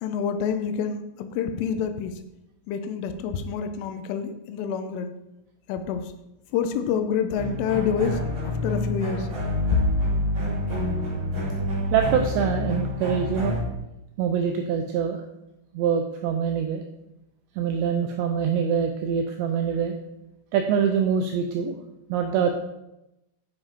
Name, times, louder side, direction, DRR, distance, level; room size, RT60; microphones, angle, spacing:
voice 1, 0.0-2.2 2.7-5.1 5.7-6.1 6.5-9.3, left 7 dB, 80° left, 9 dB, 3.1 m, -28 dB
sound 1, 7.3-13.6, left 1 dB, 30° right, 2.4 m, -27 dB
voice 2, 11.9-13.6 14.2-15.2 15.7-16.8 17.6-20.0 20.5-21.8 22.1-22.5, right 7 dB, 85° right, 5 dB, 2.5 m, -24 dB
9.8 x 5.9 x 5.0 m, 0.91 s
omnidirectional pair, 5.7 m